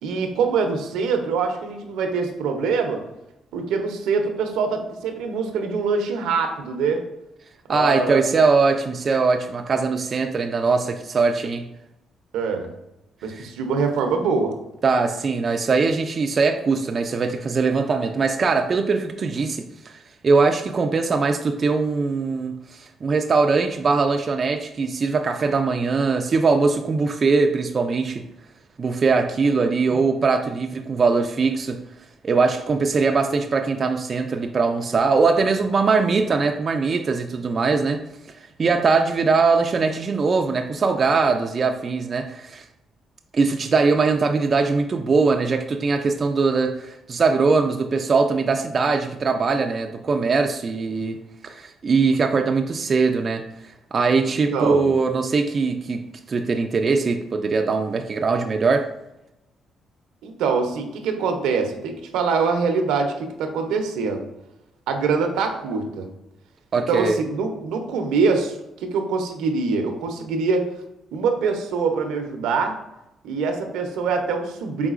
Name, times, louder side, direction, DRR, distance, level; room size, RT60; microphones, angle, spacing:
voice 1, 0.0-3.0 3.5-7.0 7.7-8.3 12.3-12.7 13.2-14.5 29.9-30.0 54.5-54.9 60.2-64.2 64.9-66.1 66.9-70.7 71.1-72.7 73.2-74.9, right 4 dB, 90° right, 5 dB, 0.6 m, -24 dB
voice 2, 7.7-11.6 13.3-13.5 14.8-28.2 28.8-31.8 32.2-38.0 38.6-42.6 43.3-51.2 51.4-53.5 53.9-56.0 56.3-58.9 66.7-67.2, right 4 dB, 40° right, 5 dB, 0.3 m, -21 dB
4.8 x 3.7 x 2.4 m, 0.88 s
cardioid pair, 90°, 0 cm